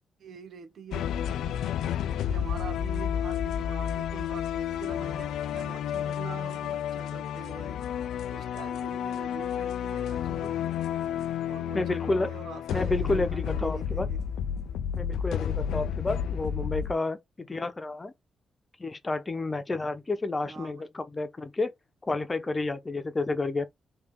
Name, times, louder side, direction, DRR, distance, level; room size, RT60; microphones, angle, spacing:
voice 1, 0.2-1.2 2.3-7.8 8.3-10.6 11.5-14.2 17.5-17.7 20.4-20.9, right 5 dB, 70° right, 0.6 m, -44 dB
sound 1, 0.9-16.9, left 9 dB, 85° left, 0.3 m, -31 dB
voice 2, 11.7-12.3 12.7-14.1 15.0-18.1 18.8-21.7 22.0-23.7, left 2 dB, 30° left, 0.8 m, -30 dB
3.4 x 2.6 x 3.7 m
supercardioid pair, 50°, 0 cm